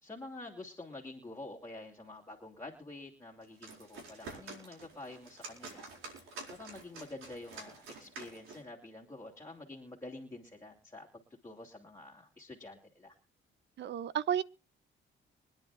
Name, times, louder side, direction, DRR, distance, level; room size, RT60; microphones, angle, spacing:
voice 1, 0.0-13.1, left 2 dB, 15° left, 2.7 m, -48 dB
sound 1, 3.4-8.7, right 3 dB, 90° right, 4.6 m, -48 dB
voice 2, 13.8-14.4, right 9 dB, 65° right, 0.7 m, -32 dB
25.0 x 10.5 x 2.5 m
cardioid pair, 90°, 20 cm